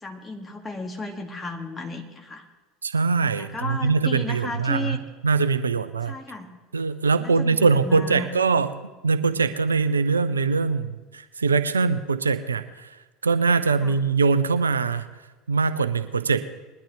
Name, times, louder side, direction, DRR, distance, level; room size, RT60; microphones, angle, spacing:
voice 1, 0.0-2.4 3.4-5.0 6.1-6.5 7.2-8.3 13.8-14.0, left 3 dB, 20° left, 3 dB, 1.9 m, -34 dB
voice 2, 2.8-5.0 5.2-6.2 6.7-13.0 13.2-15.1 15.5-16.4, right 4 dB, 85° right, 12 dB, 0.5 m, -22 dB
21.0 x 11.5 x 3.1 m, 1.2 s
figure-of-eight pair, 70°, 0 cm